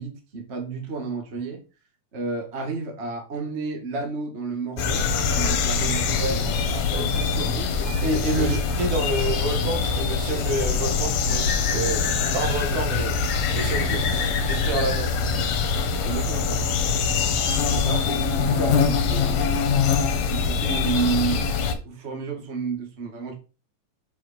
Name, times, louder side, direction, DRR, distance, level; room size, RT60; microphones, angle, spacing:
voice 1, 0.0-1.6 2.1-7.7 8.4-8.6 13.8-14.2 16.0-16.6 17.6-19.4 20.3-23.3, right 5 dB, 25° right, 2 dB, 1.5 m, -31 dB
sound 1, 4.8-21.8, left 5 dB, 80° left, 2.8 m, -23 dB
voice 2, 6.2-7.1 8.0-12.0 12.3-13.1 13.5-14.0 14.5-15.1, right 2 dB, 70° right, 3 dB, 3.2 m, -28 dB
7.1 x 4.9 x 5.2 m, 0.34 s
omnidirectional pair, 3.8 m